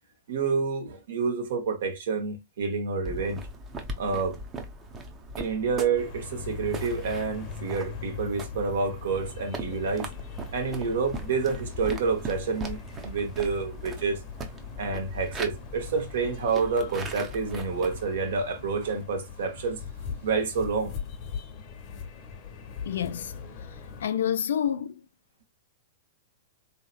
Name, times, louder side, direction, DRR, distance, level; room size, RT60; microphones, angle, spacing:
voice 1, 0.3-3.4 4.0-4.4 5.4-10.1 10.5-14.2 14.8-19.8 20.2-20.9, right 4 dB, 65° right, 1.0 m, -28 dB
sound 1, 3.0-18.1, right 2 dB, 25° right, 0.7 m, -40 dB
sound 2, 5.9-24.1, left 6 dB, 40° left, 0.8 m, -41 dB
voice 2, 22.9-23.3 24.0-25.0, left 9 dB, 70° left, 0.4 m, -28 dB
3.0 x 2.8 x 2.3 m
hypercardioid pair, 110°, 0 cm